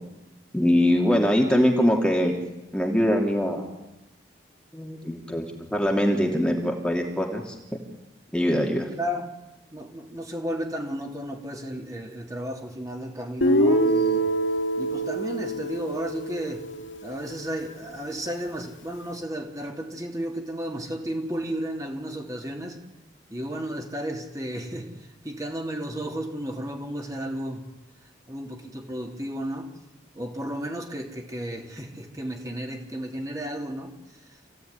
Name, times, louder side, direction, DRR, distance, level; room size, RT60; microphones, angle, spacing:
voice 1, 0.5-2.4 2.7-3.7 4.7-7.6 8.3-8.9, equal, 5° left, 0 dB, 2.8 m, -23 dB
voice 2, 9.0-9.3 9.7-14.3 14.8-16.7 17.0-22.8 23.3-27.6 28.3-29.7 30.1-34.0 34.3-34.4, equal, 20° right, 1 dB, 3.2 m, -33 dB
Guitar, 13.4-17.4, right 1 dB, 85° left, 2.2 m, -25 dB
28.5 x 17.0 x 9.8 m, 0.98 s
head